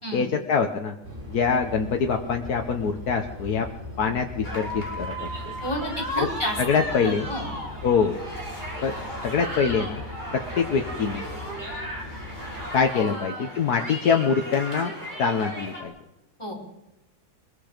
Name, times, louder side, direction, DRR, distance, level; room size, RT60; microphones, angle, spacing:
voice 1, 0.1-0.9 1.3-3.7 4.0-5.3 6.2-6.3 6.6-7.3 7.8-8.2 8.8-8.9 9.2-10.0 10.3-11.3 12.7-14.9 15.2-15.9, left 6 dB, 75° left, 3 dB, 1.7 m, -24 dB
sound 1, 1.0-12.7, left 1 dB, 45° right, 6.8 m, -40 dB
sound 2, 4.4-15.8, equal, 30° right, 5.3 m, -36 dB
voice 2, 5.6-6.6 7.0-7.5 13.0-13.1 16.4-16.5, equal, 15° left, -1 dB, 5.4 m, -30 dB
24.0 x 22.5 x 5.1 m, 0.99 s
omnidirectional pair, 1.7 m